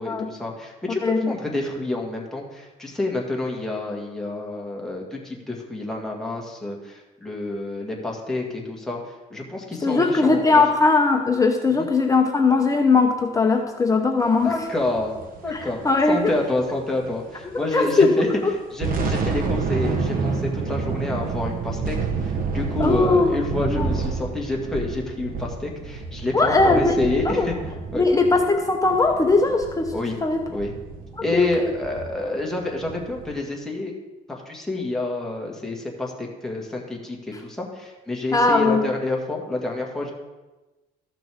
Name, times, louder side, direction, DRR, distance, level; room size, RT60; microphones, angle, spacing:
voice 1, 0.0-9.0 9.3-10.6 11.8-11.9 14.4-15.1 15.4-15.8 16.1-18.3 18.7-27.6 27.9-28.1 29.9-30.2 30.5-30.7 31.2-33.9 34.3-40.1, left 2 dB, 5° left, -2 dB, 1.8 m, -28 dB
voice 2, 9.8-14.5 15.5-16.3 17.7-18.1 22.8-23.3 23.7-23.9 26.3-26.9 27.2-27.5 28.0-29.9 30.2-30.4 31.3-31.7 38.3-38.9, left 3 dB, 20° left, 3 dB, 0.8 m, -19 dB
sound 1, 14.8-17.6 17.9-18.0 18.5-33.3, right 4 dB, 55° right, 1.1 m, -29 dB
14.0 x 5.9 x 3.5 m, 1.1 s
cardioid pair, 110°, 17 cm